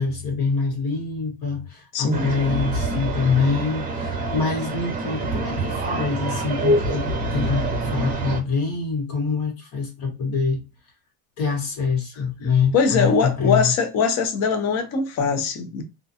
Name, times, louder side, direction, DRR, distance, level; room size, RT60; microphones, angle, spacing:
voice 1, 0.0-10.6 11.4-13.7, left 5 dB, 55° left, 1.4 m, -25 dB
voice 2, 1.9-2.3 12.7-15.8, left 5 dB, 40° left, 0.6 m, -21 dB
sound 1, 2.1-8.4, right 2 dB, 20° right, 0.6 m, -26 dB
2.4 x 2.2 x 2.7 m
cardioid pair, 140°, 40 cm